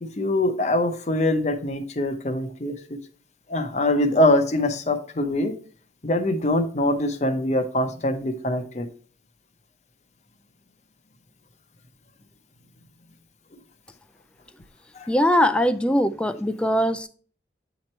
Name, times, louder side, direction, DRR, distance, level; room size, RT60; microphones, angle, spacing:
voice 1, 0.0-2.8 3.5-5.5 6.0-8.9 14.9-15.1, left 1 dB, 40° left, 0.7 m, -23 dB
voice 2, 15.1-17.1, equal, 5° left, 0.3 m, -21 dB
8.6 x 3.0 x 4.3 m
head